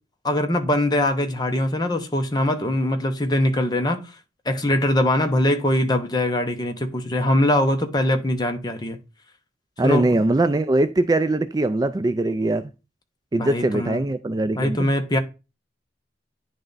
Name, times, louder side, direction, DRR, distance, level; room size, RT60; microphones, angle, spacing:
voice 1, 0.2-4.2 4.4-9.0 9.8-10.2 13.4-14.0 14.5-15.2, left 1 dB, 25° left, 0.8 m, -22 dB
voice 2, 9.8-12.6 13.3-14.9, right 2 dB, 20° right, 0.3 m, -21 dB
10.0 x 3.3 x 4.0 m
head